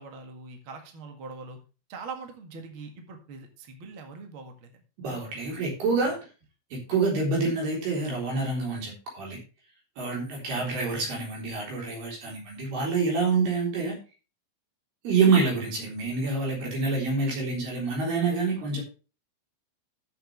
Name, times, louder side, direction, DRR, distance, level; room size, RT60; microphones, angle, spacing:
voice 1, 0.0-1.6 1.9-4.8 6.0-6.1, right 4 dB, 90° right, 5 dB, 1.1 m, -42 dB
voice 2, 5.0-6.2 6.7-9.4 10.0-14.0 15.0-18.8, right 4 dB, 55° right, -1 dB, 5.4 m, -27 dB
12.5 x 8.1 x 3.3 m, 0.32 s
omnidirectional pair, 5.7 m